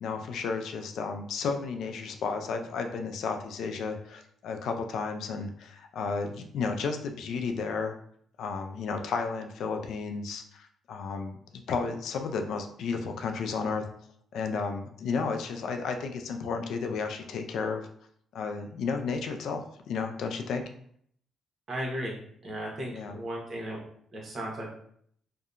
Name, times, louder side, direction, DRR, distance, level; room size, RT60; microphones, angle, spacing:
voice 1, 0.0-7.9 8.4-13.8 14.3-17.9 18.3-20.6 22.9-23.2, left 5 dB, 75° left, 5 dB, 0.3 m, -33 dB
voice 2, 21.7-22.2 22.4-23.8 24.1-24.7, right 1 dB, 45° right, -3 dB, 0.9 m, -35 dB
2.7 x 2.2 x 2.4 m, 0.64 s
cardioid pair, 105°, 0 cm